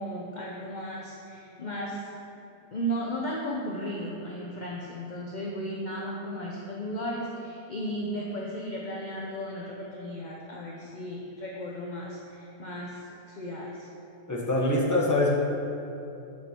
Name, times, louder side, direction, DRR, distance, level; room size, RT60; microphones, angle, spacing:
voice 1, 0.0-2.1 2.7-13.9, equal, 45° left, -3 dB, 0.6 m, -35 dB
voice 2, 14.3-15.4, left 2 dB, 15° left, -3 dB, 1.0 m, -24 dB
8.3 x 6.7 x 4.4 m, 2.8 s
omnidirectional pair, 1.6 m